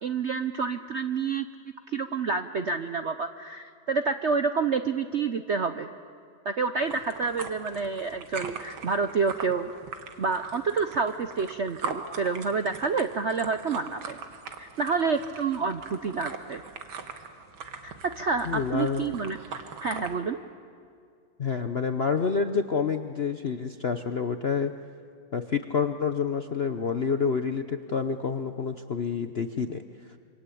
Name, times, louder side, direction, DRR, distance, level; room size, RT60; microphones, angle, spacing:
voice 1, 0.0-1.5 1.9-5.9 6.4-9.7 10.2-14.2 14.6-16.6 17.8-19.4 19.8-20.4, right 5 dB, 60° right, 9 dB, 0.7 m, -28 dB
sound 1, 6.8-20.2, right 5 dB, 80° right, 2.4 m, -41 dB
voice 2, 18.4-19.0 21.4-24.7 25.3-29.8, left 5 dB, 55° left, 8 dB, 0.7 m, -28 dB
27.0 x 25.5 x 8.5 m, 2.3 s
omnidirectional pair, 2.1 m